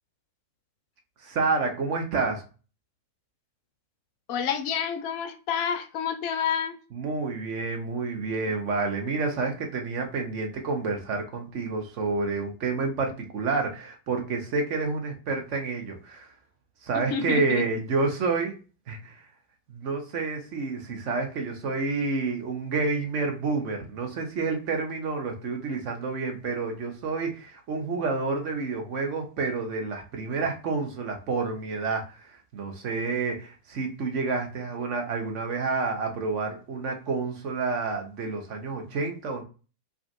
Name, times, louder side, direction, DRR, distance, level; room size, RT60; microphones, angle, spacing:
voice 1, 1.2-2.4 6.9-16.3 16.8-18.5 18.9-19.2 19.7-39.4, right 4 dB, 45° right, 0.7 m, -29 dB
voice 2, 4.3-6.8 16.9-17.6, left 7 dB, 45° left, 0.4 m, -29 dB
2.4 x 2.3 x 2.5 m
figure-of-eight pair, 90°, 0 cm